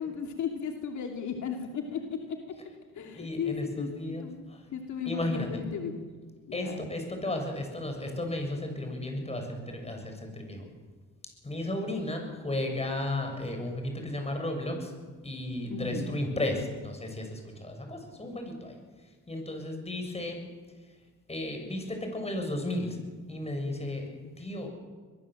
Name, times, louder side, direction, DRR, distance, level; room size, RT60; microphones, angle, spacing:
voice 1, 0.0-2.4 2.9-4.4 4.7-6.0 6.5-6.8 15.7-16.1, left 7 dB, 70° left, 3 dB, 2.8 m, -35 dB
voice 2, 3.0-4.6 5.1-5.6 6.5-10.6 11.4-14.9 15.2-18.8 19.3-20.4 21.3-23.0 23.3-24.1 24.4-24.7, left 1 dB, 20° left, 4 dB, 7.1 m, -34 dB
23.0 x 22.0 x 7.9 m, 1.5 s
cardioid pair, 90°, 30 cm